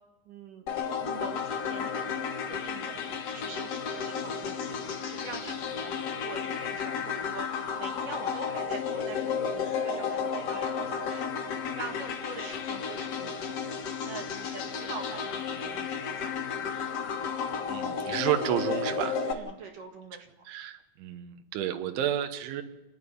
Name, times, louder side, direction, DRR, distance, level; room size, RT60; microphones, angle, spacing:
voice 1, 0.3-0.7 1.0-3.0 3.3-4.8 5.1-11.3 11.7-13.7 14.0-16.4 19.2-20.3, right 4 dB, 60° right, 3 dB, 2.5 m, -44 dB
sound 1, 0.7-19.3, left 6 dB, 85° left, 1.4 m, -33 dB
voice 2, 17.7-19.2 20.5-22.6, right 11 dB, 80° right, 7 dB, 3.5 m, -31 dB
29.0 x 10.0 x 9.7 m, 1.0 s
omnidirectional pair, 5.4 m